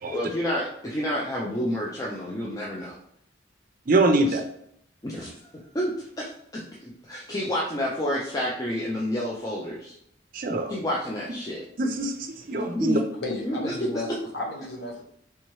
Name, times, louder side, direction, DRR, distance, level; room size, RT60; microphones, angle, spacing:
voice 1, 0.1-3.0 4.2-4.4 5.0-5.3 5.7-5.9 6.2-10.0 10.7-11.7 12.5-13.0 13.5-13.9, equal, 20° left, -4 dB, 0.4 m, -29 dB
voice 2, 3.9-4.4 10.3-10.8 11.8-13.0, right 2 dB, 45° right, 5 dB, 0.5 m, -23 dB
voice 3, 13.2-15.0, left 2 dB, 60° left, -1 dB, 0.9 m, -33 dB
3.4 x 2.9 x 3.0 m, 0.71 s
head